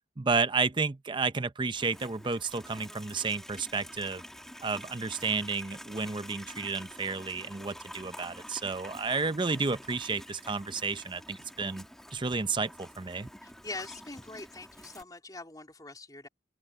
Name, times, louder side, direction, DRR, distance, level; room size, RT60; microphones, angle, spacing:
voice 1, 0.2-4.2 4.6-11.9 12.1-13.3, right 4 dB, 25° right, 0.6 m, -31 dB
Livestock farm animals working animals, 1.7-15.0, equal, 5° left, 1.4 m, -48 dB
voice 2, 13.4-16.3, left 2 dB, 20° left, 3.5 m, -43 dB
open air
head